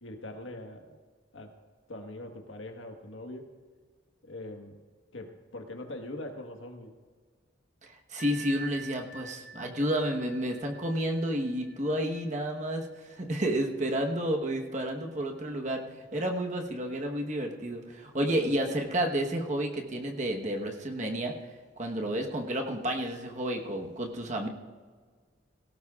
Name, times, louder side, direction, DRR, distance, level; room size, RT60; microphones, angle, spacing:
voice 1, 0.0-1.0 1.3-1.5 1.9-3.5 4.2-4.8 5.1-7.0 14.0-14.1, left 1 dB, 85° left, 4 dB, 1.5 m, -42 dB
voice 2, 7.8-21.3 21.8-24.5, right 1 dB, 40° right, 2 dB, 1.2 m, -31 dB
Bell, 8.2-13.6, right 3 dB, 60° left, 3.3 m, -48 dB
17.5 x 17.0 x 2.5 m, 1.5 s
head